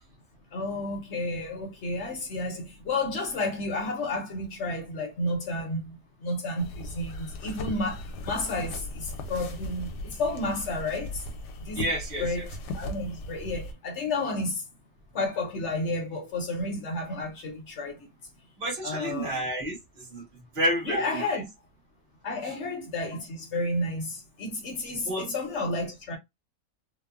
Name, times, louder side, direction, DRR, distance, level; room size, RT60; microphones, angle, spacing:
voice 1, 0.5-11.2 11.7-11.8 12.2-12.5 12.8-14.6 15.1-18.1 18.8-19.4 20.8-21.5 22.2-26.2, left 2 dB, 55° left, 0.9 m, -31 dB
sound 1, 6.6-13.7, left 1 dB, 85° left, 1.2 m, -38 dB
voice 2, 11.7-12.4 18.6-20.2 20.5-21.4 25.1-25.3, equal, 30° right, 1.1 m, -30 dB
3.0 x 2.0 x 2.3 m
omnidirectional pair, 1.8 m